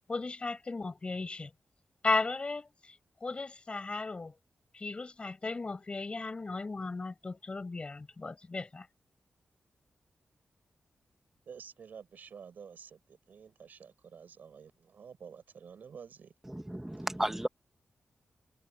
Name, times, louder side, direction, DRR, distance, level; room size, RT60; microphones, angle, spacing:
voice 1, 0.1-1.5 2.0-2.9 3.2-4.3 4.7-8.9, left 3 dB, 35° left, 5.6 m, -35 dB
voice 2, 11.5-16.3, right 6 dB, 75° right, 4.8 m, -50 dB
voice 3, 16.5-17.5, right 1 dB, 10° right, 2.0 m, -33 dB
cardioid pair, 75°, 3 cm